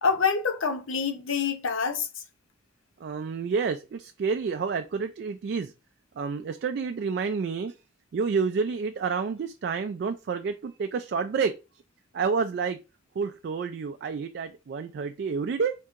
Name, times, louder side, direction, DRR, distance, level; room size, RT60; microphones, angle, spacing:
voice 1, 0.0-2.1, left 5 dB, 90° left, 0.7 m, -26 dB
voice 2, 3.0-5.7 6.2-7.7 8.1-11.5 12.1-12.8 13.2-15.7, right 5 dB, 55° right, 0.3 m, -29 dB
4.5 x 3.6 x 2.5 m
head